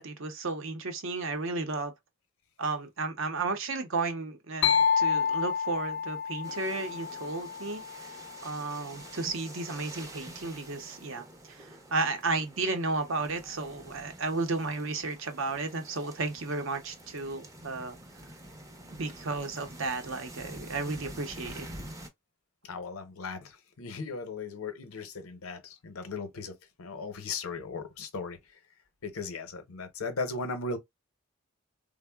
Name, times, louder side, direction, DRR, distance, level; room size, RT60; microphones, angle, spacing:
voice 1, 0.0-1.9 2.6-7.8 8.4-17.9 18.9-21.7, right 3 dB, 65° right, 0.7 m, -33 dB
sound 1, 4.6-8.3, left 7 dB, 55° left, 0.3 m, -29 dB
sound 2, 6.4-22.1, right 1 dB, 15° right, 0.5 m, -47 dB
voice 2, 22.6-28.4 29.0-30.8, left 4 dB, 85° left, 0.7 m, -37 dB
3.5 x 2.0 x 2.2 m
head